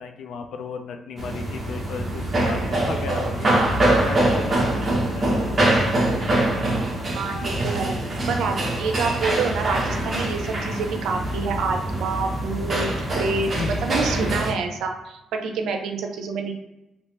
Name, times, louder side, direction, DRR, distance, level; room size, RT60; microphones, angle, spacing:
voice 1, 0.0-3.5 3.9-5.5 13.6-13.8, left 5 dB, 70° left, 6 dB, 0.4 m, -34 dB
sound 1, 1.2-14.5, right 1 dB, 35° right, 1.0 m, -24 dB
voice 2, 7.1-8.0 8.3-12.9 13.2-13.5 13.8-16.5, right 4 dB, 80° right, 4 dB, 0.6 m, -27 dB
2.9 x 2.8 x 3.2 m, 0.97 s
cardioid pair, 90°, 0 cm